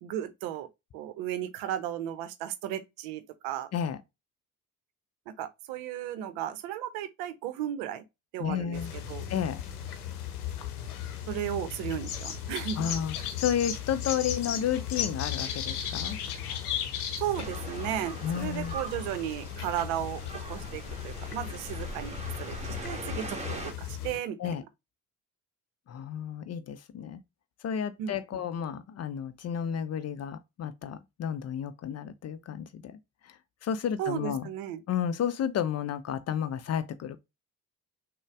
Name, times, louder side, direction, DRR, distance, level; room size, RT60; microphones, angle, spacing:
voice 1, 0.0-0.7 0.9-3.7 5.3-8.0 8.3-9.3 11.3-12.9 17.2-20.2 20.5-24.5 28.0-28.4 34.0-34.8, right 11 dB, 60° right, 0.7 m, -35 dB
voice 2, 8.4-8.9 9.3-9.6 12.8-16.2 18.2-18.7 24.4-24.6 25.9-27.2 27.6-33.0 33.2-33.4 33.6-34.5 34.9-37.2, left 8 dB, 35° left, 0.6 m, -32 dB
sound 1, 8.7-24.2, left 9 dB, 80° left, 0.8 m, -36 dB
sound 2, 17.4-23.7, right 2 dB, 15° right, 1.3 m, -42 dB
6.3 x 2.2 x 3.4 m
figure-of-eight pair, 45°, 44 cm